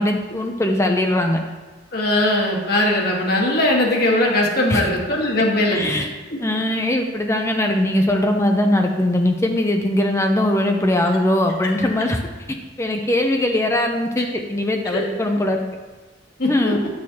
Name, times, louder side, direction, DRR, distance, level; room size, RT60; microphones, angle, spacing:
voice 1, 0.0-1.4 4.7-4.9 5.7-6.1 6.4-12.2 12.8-15.6 16.5-16.8, left 1 dB, 15° left, 3 dB, 0.5 m, -20 dB
voice 2, 1.9-5.8 6.3-6.4 14.9-15.0 16.4-16.7, left 1 dB, 55° left, -1 dB, 1.5 m, -19 dB
10.5 x 6.3 x 2.8 m, 1.3 s
head